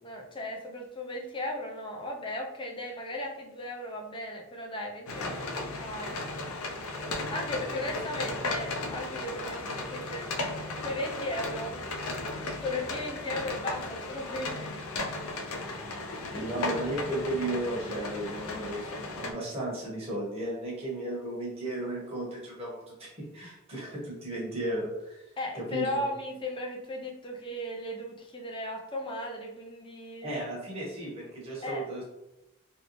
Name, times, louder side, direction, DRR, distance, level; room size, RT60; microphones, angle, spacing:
voice 1, 0.0-6.2 7.3-10.3 10.8-11.8 12.6-14.8 25.4-30.3 31.6-31.8, left 1 dB, 25° left, 1 dB, 0.4 m, -36 dB
sound 1, 5.1-19.3, left 2 dB, 80° left, 0.5 m, -35 dB
voice 2, 16.3-25.3 25.5-26.0 30.2-32.0, right 1 dB, 30° right, -4 dB, 0.9 m, -34 dB
3.1 x 2.7 x 3.0 m, 0.90 s
head